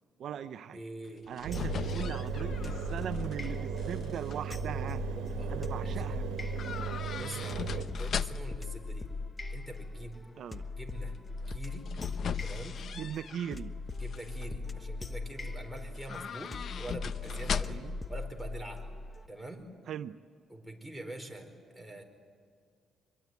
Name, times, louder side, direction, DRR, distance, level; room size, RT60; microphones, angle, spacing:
voice 1, 0.2-0.8 1.3-5.0 5.5-6.3 10.4-10.6 12.9-13.7 17.7-18.0 19.9-20.2, right 9 dB, 65° right, 12 dB, 0.7 m, -39 dB
voice 2, 0.7-1.3 5.2-6.3 7.2-9.1 9.5-10.2 10.8-11.2 11.5-11.9 12.4-12.8 14.0-18.9 19.3-19.7 20.5-22.0, right 1 dB, ahead, 7 dB, 4.7 m, -45 dB
Front Door - Creaky, 1.1-3.5 3.8-4.4 6.6-8.7 11.4-13.6 14.0-14.5 15.9-18.0 18.3-18.4, left 7 dB, 60° left, 0.7 m, -38 dB
Engine, 1.4-7.9, right 7 dB, 90° right, 1.5 m, -36 dB
sound 1, 1.5-19.3, left 3 dB, 20° left, 1.3 m, -40 dB
24.5 x 22.5 x 9.4 m, 2.1 s
cardioid pair, 90°, 0 cm